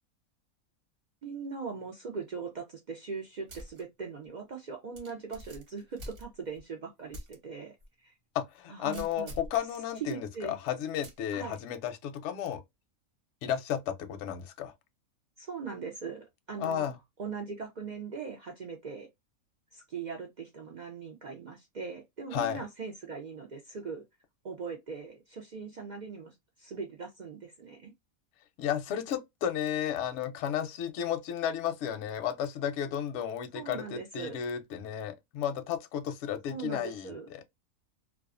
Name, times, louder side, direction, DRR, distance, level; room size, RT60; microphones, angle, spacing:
voice 1, 1.2-7.7 8.0-8.1 8.7-9.3 10.0-10.6 11.3-11.6 15.4-16.9 17.2-19.1 19.7-24.0 24.4-27.9 33.5-34.4 36.5-37.3, right 5 dB, 70° right, 0.4 m, -40 dB
sound 1, 3.5-3.8 4.2-4.3 5.0-6.6 7.1-7.4 7.8-7.9 8.9-9.6 11.0-11.3, equal, 50° right, 0.9 m, -46 dB
voice 2, 8.3-12.6 13.4-14.7 16.6-17.0 22.3-22.6 28.6-37.4, left 9 dB, 65° left, 0.7 m, -33 dB
2.3 x 2.3 x 2.4 m
omnidirectional pair, 1.5 m